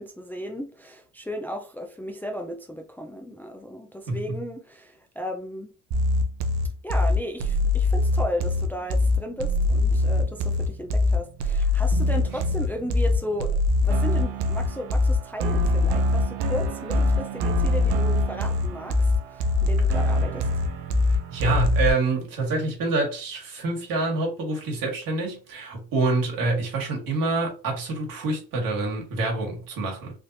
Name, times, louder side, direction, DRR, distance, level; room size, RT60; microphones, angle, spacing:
voice 1, 0.0-5.7 6.8-20.5, equal, 5° left, 0.5 m, -35 dB
sound 1, 5.9-21.9, left 2 dB, 75° right, 0.7 m, -23 dB
voice 2, 21.3-30.1, right 3 dB, 60° right, 1.7 m, -26 dB
3.3 x 2.7 x 2.6 m
supercardioid pair, 90°, 38 cm